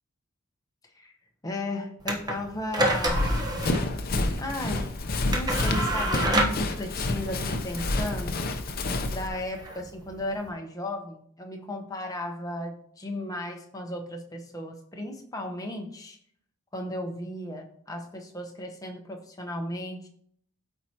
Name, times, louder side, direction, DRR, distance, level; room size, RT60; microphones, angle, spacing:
voice 1, 1.4-3.4 4.4-5.0 5.3-8.5 9.1-16.2 16.7-20.1, left 1 dB, 15° left, 3 dB, 0.9 m, -35 dB
sound 1, 2.0-10.5, right 1 dB, 20° right, 1.0 m, -30 dB
Run, 3.1-9.3, left 2 dB, 40° left, 0.7 m, -29 dB
13.0 x 4.5 x 2.9 m, 0.63 s
head